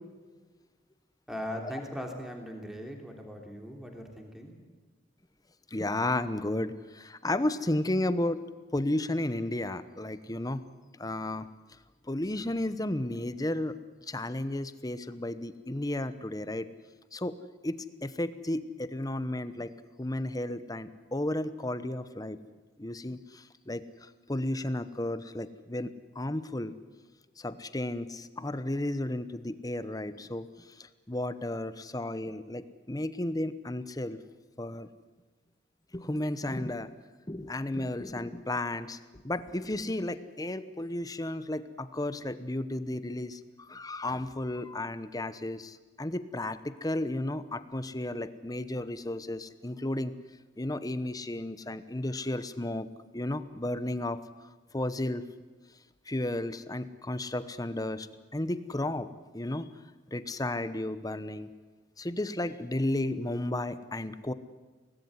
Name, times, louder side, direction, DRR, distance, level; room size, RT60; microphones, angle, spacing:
voice 1, 1.3-4.6, equal, ahead, 2 dB, 3.3 m, -39 dB
voice 2, 5.7-8.4 8.7-10.7 11.0-11.5 12.1-13.7 14.1-16.7 17.1-17.4 17.6-19.7 20.0-22.4 22.8-26.7 27.4-30.5 30.8-34.2 34.6-34.9 35.9-36.9 37.3-39.0 39.2-50.1 50.6-52.9 53.1-54.2 54.7-55.2 56.1-58.1 58.3-59.1 59.3-59.7 60.1-61.5 62.0-64.3, left 1 dB, 20° left, 13 dB, 1.0 m, -33 dB
24.0 x 19.0 x 9.7 m, 1.3 s
head